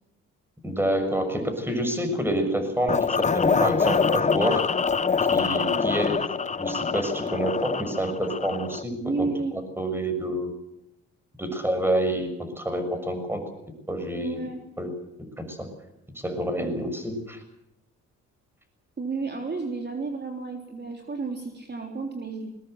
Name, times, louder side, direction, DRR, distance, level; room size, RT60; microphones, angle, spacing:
voice 1, 0.6-4.6 5.3-6.2 6.6-10.5 11.4-13.4 13.9-14.4 14.8-14.9 15.4-15.7 16.2-17.4, right 1 dB, 5° right, 7 dB, 6.4 m, -28 dB
sound 1, 2.9-8.8, left 5 dB, 25° left, 0.8 m, -25 dB
voice 2, 9.0-9.6 14.2-14.6 16.6-16.8 19.0-22.5, right 4 dB, 35° right, 3 dB, 3.5 m, -32 dB
21.0 x 20.5 x 7.9 m, 0.84 s
cardioid pair, 90°, 30 cm